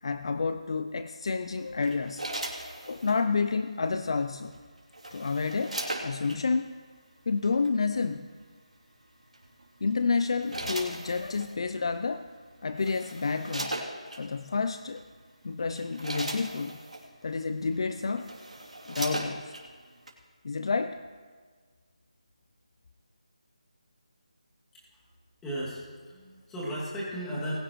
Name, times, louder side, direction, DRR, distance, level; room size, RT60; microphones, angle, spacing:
voice 1, 0.0-2.2 2.9-4.5 5.1-6.7 7.3-8.3 9.8-12.3 12.6-13.8 14.2-15.0 15.4-16.8 17.2-18.3 18.9-19.5 20.4-21.0, left 4 dB, 50° left, 10 dB, 0.5 m, -29 dB
sound 1, 1.8-3.2 4.5-6.4 7.4-7.7 9.3-9.6 10.2-11.5 12.3-12.4 12.7-14.2 15.0-15.1 15.6-17.1 17.7-17.8 18.1-19.7 20.1-20.2, right 1 dB, 90° right, 3.0 m, -37 dB
voice 2, 25.4-27.6, equal, 5° left, -7 dB, 2.4 m, -35 dB
20.5 x 9.9 x 3.1 m, 1.6 s
figure-of-eight pair, 165°, 4 cm